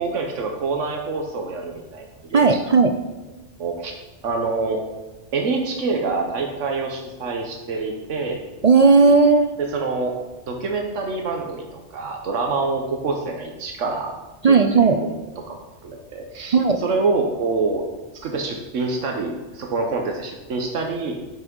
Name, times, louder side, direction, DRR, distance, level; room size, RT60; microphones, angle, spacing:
voice 1, 0.0-2.6 3.6-3.9 4.2-4.8 5.3-8.4 9.7-10.2 10.5-14.1 14.5-15.2 15.5-15.6 15.8-17.8 18.1-21.2, right 3 dB, 90° right, 2 dB, 1.3 m, -26 dB
voice 2, 2.3-2.9 8.6-9.5 14.4-15.0 16.5-16.8, right 4 dB, 50° right, 6 dB, 0.5 m, -14 dB
8.9 x 6.0 x 5.2 m, 1.2 s
omnidirectional pair, 1.2 m